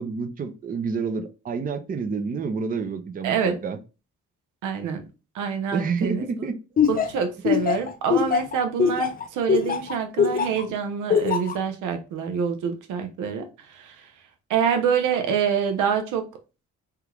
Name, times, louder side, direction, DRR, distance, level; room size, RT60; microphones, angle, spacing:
voice 1, 0.0-3.8 5.7-6.6, right 5 dB, 30° right, 0.5 m, -28 dB
voice 2, 3.2-3.6 4.6-5.0 5.3-6.3 6.9-14.1 14.5-16.2, right 7 dB, 85° right, 0.7 m, -26 dB
Laughter, 6.8-10.6 11.1-11.5, left 7 dB, 30° left, 0.5 m, -21 dB
3.5 x 2.4 x 3.0 m
cardioid pair, 90°, 30 cm